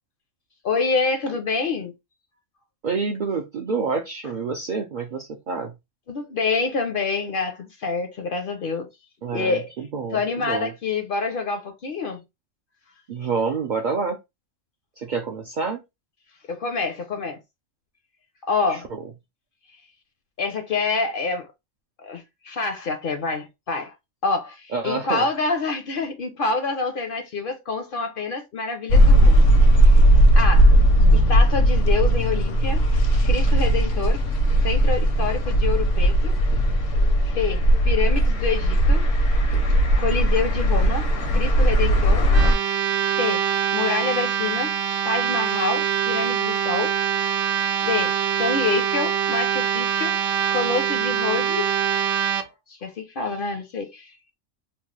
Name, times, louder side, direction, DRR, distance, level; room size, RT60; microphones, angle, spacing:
voice 1, 0.6-1.9 6.1-8.9 9.3-9.7 10.1-12.2 16.5-17.4 18.5-18.9 20.4-21.5 22.0-23.9 24.2-29.5 29.8-30.0 30.4-30.7 31.1-32.8 33.2-34.2 34.6-36.4 37.3-39.1 40.0-42.3 43.2-43.4 43.7-44.7 45.0-46.9 47.8-50.2 50.5-51.7 52.7-54.1, left 4 dB, 60° left, 0.6 m, -27 dB
voice 2, 2.8-5.7 9.2-10.7 13.1-14.2 15.0-15.8 18.7-19.1 24.7-25.3, right 4 dB, 60° right, 0.5 m, -28 dB
sound 1, 28.9-42.5, right 1 dB, 80° left, 1.1 m, -17 dB
sound 2, 42.3-52.4, right 9 dB, 80° right, 0.9 m, -24 dB
3.0 x 2.2 x 3.1 m
omnidirectional pair, 1.3 m